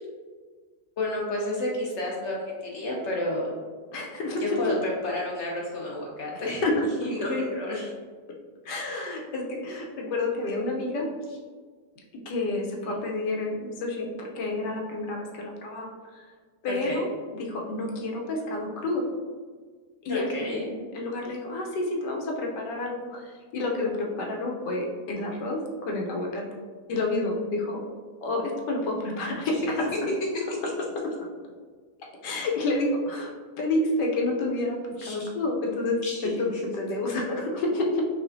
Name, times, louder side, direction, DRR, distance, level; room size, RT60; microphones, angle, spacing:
voice 1, 1.0-3.5 4.4-6.6 7.0-7.9 12.9-13.0 16.8-17.1 20.1-20.7 35.0-35.3 36.0-36.2, left 1 dB, 60° left, -3 dB, 0.8 m, -30 dB
voice 2, 3.9-4.7 6.3-6.9 8.3-8.4 8.6-11.1 12.2-16.2 16.6-19.1 20.0-26.5 26.9-27.8 28.2-30.1 30.6-31.1 32.0-38.0, left 2 dB, 85° left, 0 dB, 1.3 m, -29 dB
5.5 x 2.4 x 2.6 m, 1.5 s
omnidirectional pair, 1.8 m